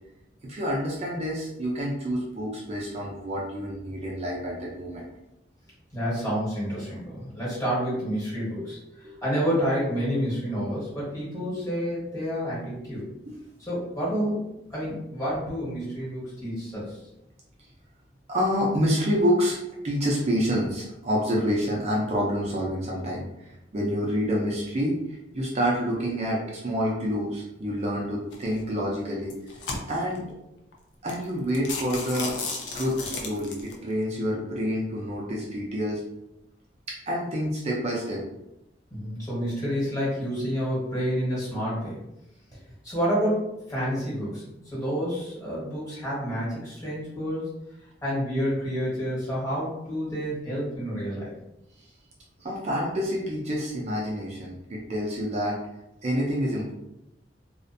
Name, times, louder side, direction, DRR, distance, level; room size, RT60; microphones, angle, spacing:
voice 1, 0.4-5.1 8.5-8.6 9.0-9.1 18.3-19.6 19.8-29.3 29.9-30.3 31.0-32.5 32.7-36.0 36.9-38.2 51.8-51.9 52.4-55.6 56.0-56.7, equal, 35° right, -3 dB, 0.4 m, -28 dB
voice 2, 5.9-13.1 13.6-17.0 38.9-42.0 42.8-47.5 48.0-51.3, equal, 20° left, -8 dB, 1.2 m, -29 dB
sound 1, 28.3-28.6 29.2-30.2 30.7-30.8 31.1-31.2 31.5-33.7, left 4 dB, 75° left, 0.5 m, -34 dB
2.4 x 2.1 x 2.5 m, 0.89 s
head